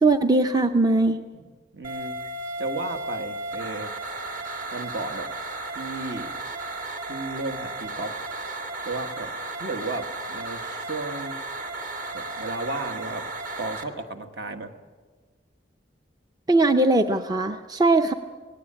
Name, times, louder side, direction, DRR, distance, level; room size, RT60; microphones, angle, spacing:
voice 1, 0.0-1.2 16.5-18.1, right 2 dB, 20° right, 7 dB, 0.6 m, -20 dB
voice 2, 1.7-2.3 2.6-4.1 4.7-5.3 5.7-6.3 7.1-8.2 8.8-9.3 9.6-11.4 12.1-13.3 13.6-14.7, right 2 dB, 60° right, 7 dB, 1.5 m, -34 dB
sound 1, 1.8-13.8, right 2 dB, 45° right, 2.0 m, -34 dB
18.5 x 17.5 x 8.7 m, 1.4 s
head